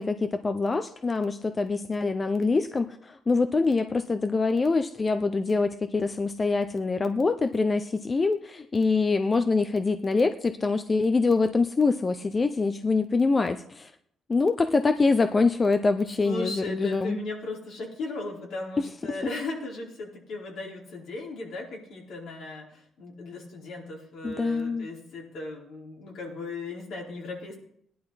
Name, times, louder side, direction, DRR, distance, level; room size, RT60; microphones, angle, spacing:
voice 1, 0.0-13.9 14.3-17.2 18.8-18.9 24.2-24.9, left 3 dB, 30° left, 9 dB, 0.7 m, -25 dB
voice 2, 16.2-27.6, left 2 dB, 80° left, -3 dB, 4.7 m, -37 dB
17.0 x 11.0 x 4.2 m, 0.71 s
cardioid pair, 90°, 0 cm